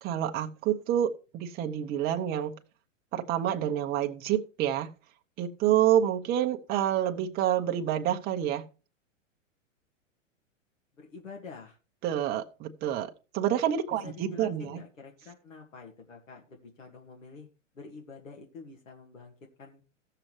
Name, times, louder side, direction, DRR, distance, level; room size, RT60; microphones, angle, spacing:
voice 1, 0.0-2.5 3.1-4.9 5.4-8.6 12.0-14.8, right 11 dB, 25° right, 0.8 m, -28 dB
voice 2, 11.0-11.8 14.0-17.5 17.8-19.3 19.6-19.8, left 4 dB, 75° left, 2.0 m, -47 dB
16.5 x 6.7 x 3.1 m
hypercardioid pair, 110°, 39 cm